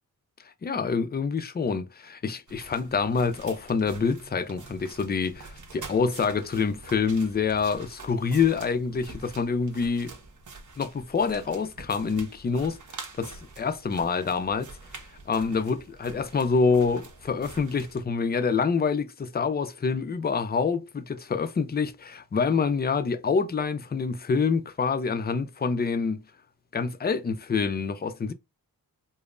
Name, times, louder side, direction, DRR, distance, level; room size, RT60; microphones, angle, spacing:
voice 1, 0.6-10.1 10.8-12.8 13.2-14.7 15.3-26.2 26.7-28.3, left 5 dB, 25° left, 0.5 m, -26 dB
sound 1, 2.5-18.0, right 4 dB, 55° right, 1.1 m, -46 dB
5.1 x 2.0 x 2.5 m
wide cardioid pair, 110°, 36 cm